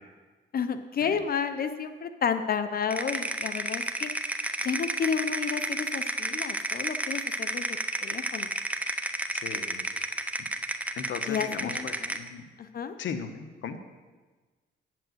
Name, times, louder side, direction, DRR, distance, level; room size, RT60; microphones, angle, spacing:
voice 1, 0.5-4.1 4.6-7.8 8.0-8.5 11.3-12.2 12.6-12.9, left 6 dB, 50° left, 11 dB, 0.7 m, -31 dB
sound 1, 2.9-12.3, right 1 dB, 5° right, 0.7 m, -31 dB
voice 2, 9.3-9.8 11.0-12.4 13.0-13.8, left 6 dB, 70° left, 9 dB, 1.1 m, -37 dB
8.9 x 7.7 x 7.9 m, 1.3 s
cardioid pair, 90°, 20 cm